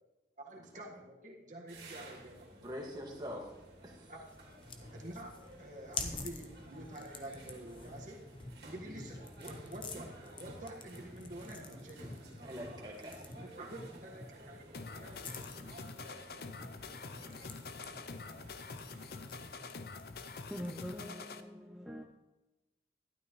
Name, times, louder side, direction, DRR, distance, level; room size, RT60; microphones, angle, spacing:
voice 1, 0.4-2.5 4.1-4.2 4.9-8.2 8.6-12.4 13.4-15.6, right 1 dB, 45° right, 1.6 m, -48 dB
sound 1, 1.7-19.5, right 1 dB, 70° right, 2.6 m, -54 dB
voice 2, 2.5-3.5 3.8-4.1 8.8-9.1 12.4-13.2, equal, 25° right, 1.9 m, -44 dB
sound 2, 4.2-20.9, left 3 dB, 30° left, 0.8 m, -49 dB
sound 3, 14.7-21.4, left 4 dB, 60° left, 0.6 m, -46 dB
voice 3, 20.5-22.0, equal, ahead, 0.6 m, -43 dB
12.5 x 11.5 x 3.1 m
head